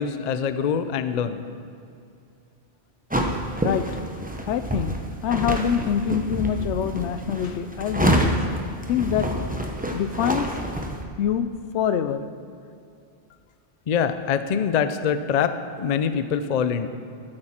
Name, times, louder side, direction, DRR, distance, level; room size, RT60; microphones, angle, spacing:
voice 1, 0.0-1.4 13.9-16.9, left 7 dB, 50° left, 10 dB, 0.5 m, -24 dB
Cloth Flapping On A Clothesline Thickly, 3.1-11.0, right 1 dB, 10° right, 0.7 m, -27 dB
voice 2, 3.6-4.0 4.5-4.9 5.2-8.4 8.9-9.3 9.9-10.6 11.2-12.3, left 8 dB, 80° left, 12 dB, 0.9 m, -25 dB
12.5 x 8.7 x 4.3 m, 2.5 s
omnidirectional pair, 1.2 m